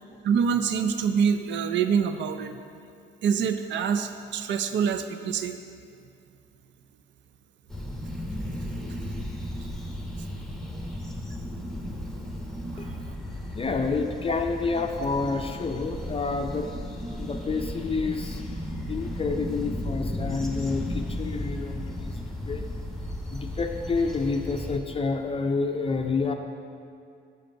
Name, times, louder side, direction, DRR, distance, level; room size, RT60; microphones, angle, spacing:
voice 1, 0.2-2.6 3.2-5.5 12.7-13.0, right 7 dB, 65° right, 9 dB, 0.5 m, -25 dB
sound 1, 7.7-24.8, left 1 dB, ahead, 0.9 m, -35 dB
voice 2, 12.8-13.1 13.5-16.7 17.1-22.8 23.3-26.3, left 4 dB, 30° left, 5 dB, 0.4 m, -29 dB
6.5 x 5.1 x 5.5 m, 2.5 s
cardioid pair, 90°, 20 cm